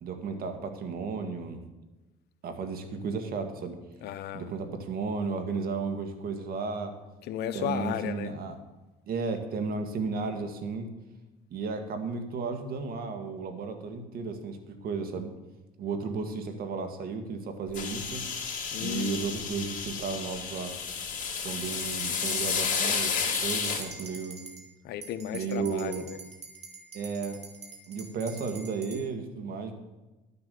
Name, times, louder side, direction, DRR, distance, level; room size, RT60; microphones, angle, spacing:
voice 1, 0.0-1.6 2.4-3.8 4.3-7.0 7.5-8.6 9.1-10.9 11.5-15.3 15.8-18.2 18.8-20.7 21.4-24.4 25.3-26.1 26.9-27.4 27.9-29.7, right 4 dB, 60° right, 6 dB, 1.9 m, -34 dB
voice 2, 4.0-4.5 7.2-8.3 18.7-19.1 24.8-26.2, left 10 dB, 75° left, 11 dB, 0.9 m, -34 dB
sound 1, 17.7-23.8, left 6 dB, 50° left, 3.0 m, -31 dB
sound 2, 21.6-24.6 25.0-29.0, right 3 dB, 40° right, 2.5 m, -45 dB
11.5 x 7.1 x 6.9 m, 1.1 s
cardioid pair, 110°, 17 cm